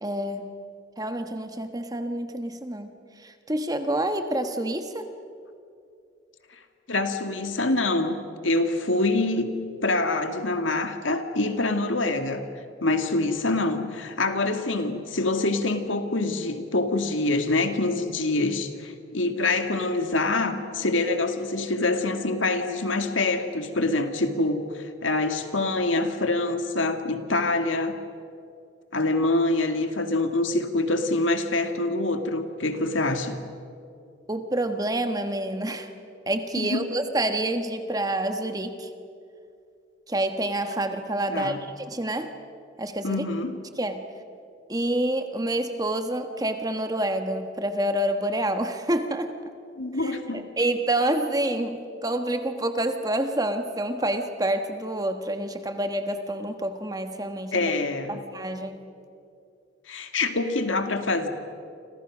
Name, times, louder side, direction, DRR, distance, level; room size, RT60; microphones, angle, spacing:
voice 1, 0.0-0.5 1.0-5.1 34.3-35.9 36.3-38.9 40.1-42.3 42.8-43.2 43.8-44.0 44.7-49.3 50.0-57.7 58.1-58.8, right 1 dB, 20° right, 7 dB, 1.4 m, -28 dB
voice 2, 6.9-8.2 8.4-9.6 9.8-12.5 12.8-28.0 28.9-33.4 36.6-36.9 41.3-41.6 43.0-43.6 49.8-50.5 57.5-58.2 59.9-61.3, left 2 dB, 85° left, 7 dB, 2.1 m, -25 dB
30.0 x 26.0 x 6.2 m, 2.5 s
head